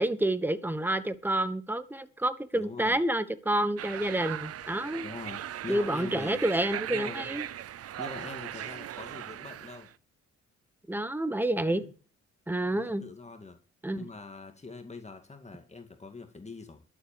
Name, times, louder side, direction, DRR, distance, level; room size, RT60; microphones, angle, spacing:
voice 1, 0.0-5.1 5.7-7.5 10.9-11.8 12.5-13.0 13.8-14.1, right 1 dB, 5° right, 1.2 m, -29 dB
voice 2, 2.5-3.0 5.0-6.4 6.9-7.3 8.0-9.9 11.7-11.9 12.7-13.6 14.0-16.8, left 3 dB, 20° left, 2.0 m, -43 dB
sound 1, 3.8-9.9, right 11 dB, 50° right, 0.6 m, -39 dB
12.0 x 7.7 x 6.9 m
cardioid pair, 90°, 30 cm